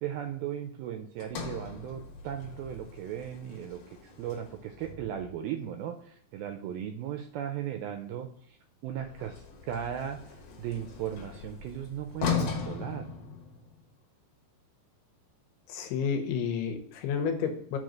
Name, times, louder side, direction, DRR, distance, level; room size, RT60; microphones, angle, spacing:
voice 1, 0.0-8.6 8.8-13.1, right 10 dB, 85° right, 6 dB, 2.2 m, -37 dB
Sliding door, 1.2-5.5 8.9-13.9, left 5 dB, 65° left, 2.5 m, -38 dB
voice 2, 15.7-17.8, left 6 dB, 80° left, 6 dB, 2.8 m, -31 dB
6.6 x 3.9 x 6.2 m, 0.62 s
omnidirectional pair, 4.8 m